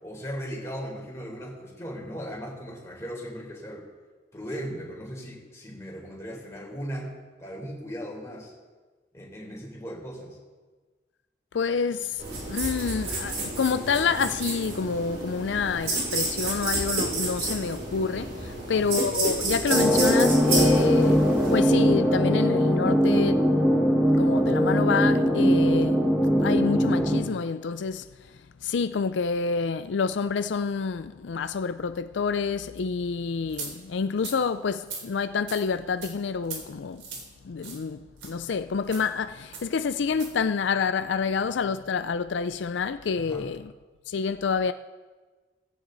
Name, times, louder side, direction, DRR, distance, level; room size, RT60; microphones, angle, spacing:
voice 1, 0.0-3.9 4.3-7.1 7.4-8.5 9.1-10.4 18.6-18.8 43.2-43.5, equal, 15° left, 3.8 m, -37 dB
voice 2, 11.5-12.2 12.5-23.4 24.2-26.0 26.4-28.0 28.6-37.0 37.4-43.7 44.1-44.7, left 5 dB, 80° left, 0.4 m, -28 dB
sound 1, 12.2-21.6, right 2 dB, 60° right, 6.2 m, -30 dB
sound 2, 19.7-27.2, equal, 5° right, 1.7 m, -21 dB
sound 3, 33.5-33.7 34.2-34.4 34.8-35.0 35.5-35.6 36.0-36.1 36.4-36.6 37.0-37.2 37.6-37.8 38.2-38.3 38.8-39.1 39.5-39.7 40.1-40.3, right 5 dB, 85° right, 3.8 m, -38 dB
17.5 x 16.0 x 4.0 m
head